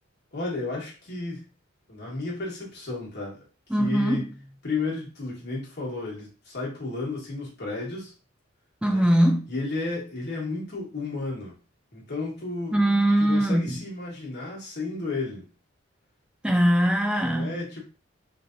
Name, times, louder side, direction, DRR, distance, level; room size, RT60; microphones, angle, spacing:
voice 1, 0.3-1.5 1.9-3.4 3.8-4.3 4.6-8.1 8.9-9.1 9.5-11.5 11.9-12.8 13.2-15.4 17.2-17.8, left 3 dB, 55° left, 1.3 m, -33 dB
voice 2, 3.7-4.2 8.8-9.5 12.7-13.8 16.4-17.6, right 1 dB, 5° right, 0.4 m, -21 dB
3.3 x 2.6 x 2.5 m
head